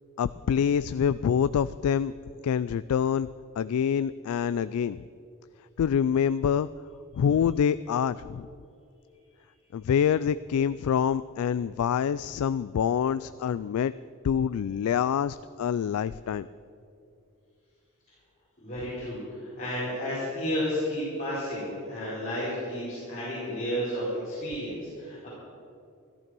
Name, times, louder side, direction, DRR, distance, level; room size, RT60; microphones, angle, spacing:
voice 1, 0.2-2.1 2.4-3.3 3.6-5.0 5.8-6.7 7.2-8.5 9.7-13.9 14.2-16.5, left 8 dB, 80° left, 15 dB, 0.3 m, -26 dB
voice 2, 18.6-25.3, equal, 35° left, -9 dB, 4.4 m, -32 dB
14.0 x 13.5 x 6.1 m, 2.6 s
head